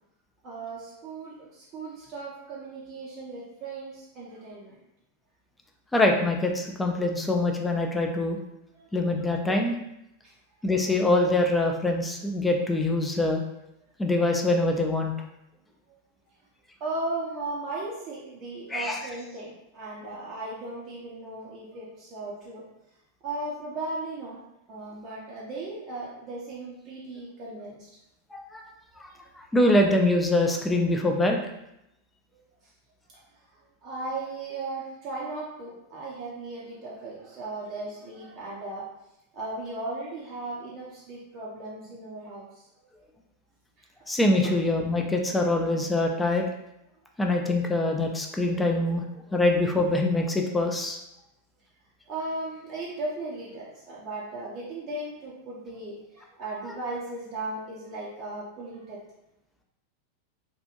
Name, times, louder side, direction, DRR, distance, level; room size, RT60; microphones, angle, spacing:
voice 1, 0.4-4.8 8.7-8.9 10.2-10.3 15.9-16.0 16.8-22.6 23.2-24.4 24.7-27.9 29.1-29.3 32.6-32.7 33.1-38.9 39.3-42.7 43.8-43.9 44.4-44.5 52.1-59.1, right 2 dB, 40° right, -5 dB, 0.6 m, -37 dB
voice 2, 5.9-8.4 8.9-9.8 10.6-13.4 14.0-15.1 18.7-19.0 28.3-28.6 29.5-31.4 44.1-46.5 47.2-49.0 49.3-51.0, left 2 dB, 10° left, 2 dB, 0.4 m, -24 dB
2.8 x 2.5 x 2.4 m, 0.84 s
figure-of-eight pair, 90°, 0 cm